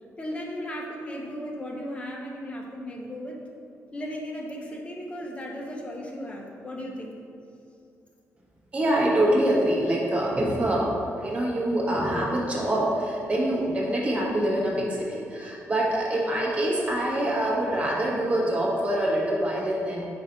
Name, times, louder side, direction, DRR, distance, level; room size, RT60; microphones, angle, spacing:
voice 1, 0.2-3.4 3.9-7.1, equal, 20° left, -1 dB, 0.9 m, -36 dB
voice 2, 8.7-20.1, right 1 dB, 25° right, -4 dB, 1.3 m, -25 dB
4.6 x 4.5 x 5.6 m, 2.6 s
cardioid pair, 130°, 6 cm